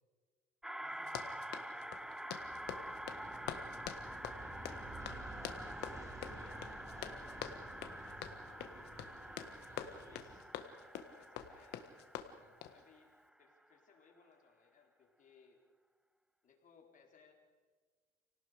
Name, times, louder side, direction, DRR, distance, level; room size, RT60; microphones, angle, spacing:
sound 1, 0.6-13.3, right 1 dB, 5° right, 0.5 m, -48 dB
voice 1, 0.8-2.2 2.9-3.7 9.6-9.9 11.4-11.5 12.4-12.6, right 3 dB, 45° right, 3 dB, 6.4 m, -65 dB
Run, 1.0-12.8, left 10 dB, 80° left, 1.6 m, -47 dB
Aircraft, 2.4-10.4, right 1 dB, 20° right, 5.4 m, -52 dB
voice 2, 6.3-7.2 7.8-9.3 9.6-10.5 11.1-11.8 12.6-15.6 16.4-17.3, left 6 dB, 50° left, 2 dB, 4.0 m, -65 dB
30.0 x 18.5 x 5.1 m, 1.5 s
cardioid pair, 110°, 17 cm